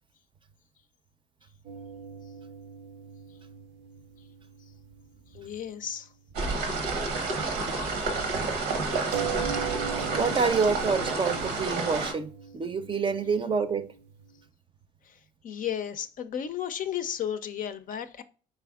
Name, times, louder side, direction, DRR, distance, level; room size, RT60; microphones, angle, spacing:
sound 1, 1.6-5.5 5.8-5.9 9.1-14.3, right 8 dB, 70° right, 0.6 m, -39 dB
voice 1, 5.3-6.1 15.1-15.2 15.4-18.2, left 9 dB, 50° left, 0.5 m, -33 dB
sound 2, 6.3-12.1, right 3 dB, 85° right, 1.0 m, -29 dB
voice 2, 10.1-13.8, right 5 dB, 30° right, 0.5 m, -27 dB
4.2 x 3.3 x 2.3 m
supercardioid pair, 75°, 18 cm